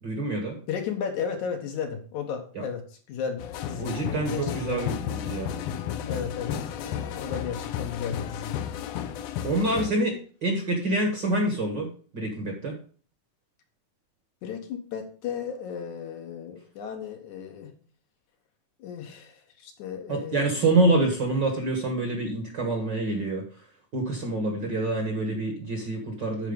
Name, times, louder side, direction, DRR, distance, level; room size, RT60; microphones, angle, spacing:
voice 1, 0.0-0.6 2.5-2.6 3.8-5.5 9.4-12.8 20.1-23.7 23.9-26.5, right 2 dB, 45° right, 2 dB, 1.6 m, -27 dB
voice 2, 0.7-2.8 3.1-3.4 3.7-4.8 6.1-8.7 14.4-17.7 18.8-20.5, left 7 dB, 70° left, 4 dB, 2.5 m, -34 dB
sound 1, 3.4-9.9, left 9 dB, 90° left, 1.4 m, -33 dB
11.0 x 4.5 x 5.2 m, 0.41 s
omnidirectional pair, 3.7 m